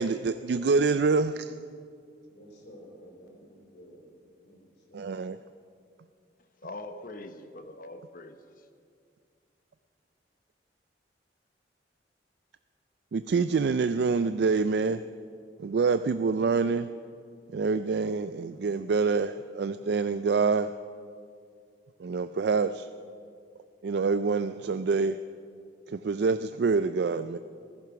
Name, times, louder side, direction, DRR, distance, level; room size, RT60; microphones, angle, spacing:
voice 1, 0.0-1.5 4.9-5.4 13.1-15.0 15.6-16.9 17.5-20.7 22.0-22.9 23.8-25.2 25.9-27.4, right 4 dB, 65° right, 11 dB, 0.4 m, -26 dB
voice 2, 2.2-4.1 4.4-5.1, equal, 75° left, 2 dB, 3.3 m, -52 dB
voice 3, 6.6-8.7, left 2 dB, 50° left, 8 dB, 0.9 m, -43 dB
15.0 x 14.0 x 5.9 m, 2.4 s
head